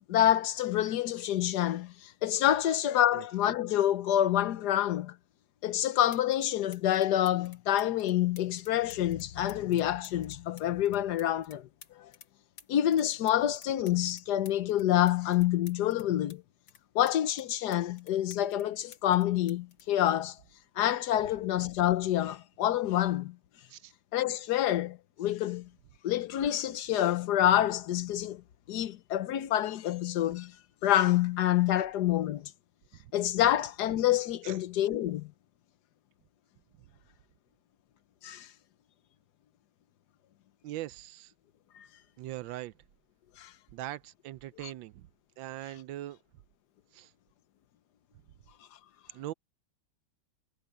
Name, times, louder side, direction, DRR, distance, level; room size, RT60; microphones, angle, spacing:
voice 1, 0.1-5.2 5.6-11.7 12.0-12.1 12.7-16.4 16.9-20.4 20.8-23.4 24.1-25.7 26.0-28.4 28.7-30.6 30.8-32.5 33.1-35.3 38.2-38.5 41.7-41.9 43.4-43.5, left 12 dB, 60° left, 1.3 m, -27 dB
sound 1, 5.6-5.7 6.1-6.5 6.7-12.3 12.6-16.4 16.7-18.7 18.9-20.8 21.7-21.9, left 7 dB, 90° left, 2.5 m, -54 dB
voice 2, 40.6-41.3 42.2-42.7 43.7-45.1 45.4-46.2 46.9-47.1 49.1-49.3, right 15 dB, 80° right, 1.3 m, -40 dB
omnidirectional pair, 2.1 m